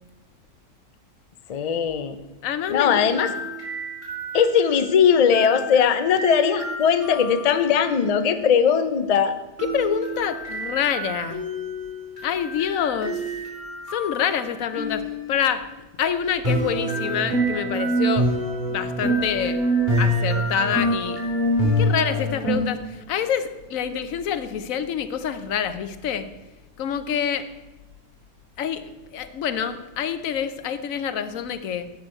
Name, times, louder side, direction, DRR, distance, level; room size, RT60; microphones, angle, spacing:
voice 1, 1.5-2.2 2.7-3.3 4.3-9.4, left 7 dB, 45° left, 0.5 m, -19 dB
voice 2, 2.4-3.1 9.7-11.5 12.2-13.3 13.9-15.7 16.0-18.3 18.6-19.6 20.0-21.2 21.8-26.3 26.8-27.5 28.6-31.9, left 8 dB, 90° left, 1.1 m, -27 dB
sound 1, 3.0-8.3 9.6-15.4 16.4-22.6, right 1 dB, 35° right, 3.5 m, -27 dB
11.5 x 7.9 x 4.3 m
omnidirectional pair, 1.4 m